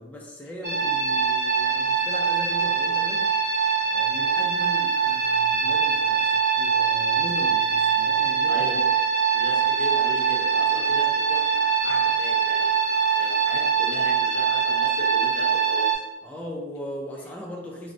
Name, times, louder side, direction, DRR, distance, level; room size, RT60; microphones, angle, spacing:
voice 1, 0.0-3.3 3.8-8.7 16.2-17.9, left 1 dB, 10° left, -2 dB, 0.3 m, -39 dB
sound 1, 0.6-15.9, right 6 dB, 55° right, 0.8 m, -23 dB
voice 2, 8.5-8.8 9.3-12.7 13.1-15.9, left 2 dB, 75° left, 1 dB, 0.5 m, -37 dB
4.4 x 2.0 x 2.5 m, 1.1 s
head